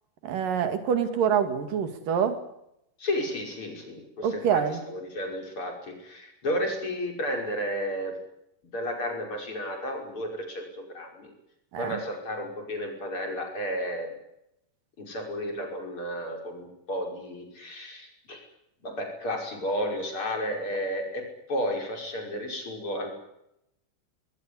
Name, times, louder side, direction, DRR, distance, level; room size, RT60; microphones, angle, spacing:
voice 1, 0.2-2.4 4.2-4.8 11.7-12.0, right 7 dB, 85° right, 8 dB, 3.9 m, -26 dB
voice 2, 3.0-8.2 8.7-11.3 11.8-14.1 15.0-18.4 18.8-23.1, equal, 40° left, 2 dB, 6.5 m, -32 dB
22.0 x 20.0 x 9.9 m, 0.81 s
omnidirectional pair, 3.8 m